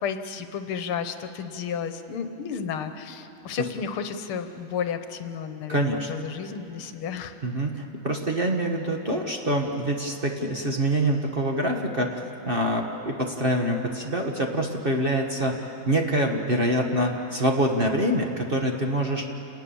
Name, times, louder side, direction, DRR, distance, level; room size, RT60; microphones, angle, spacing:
voice 1, 0.0-7.3, left 7 dB, 80° left, 9 dB, 1.9 m, -32 dB
voice 2, 5.7-6.1 7.4-12.2 12.5-19.2, right 1 dB, 30° right, 2 dB, 1.3 m, -25 dB
28.5 x 19.0 x 7.1 m, 2.9 s
omnidirectional pair, 2.4 m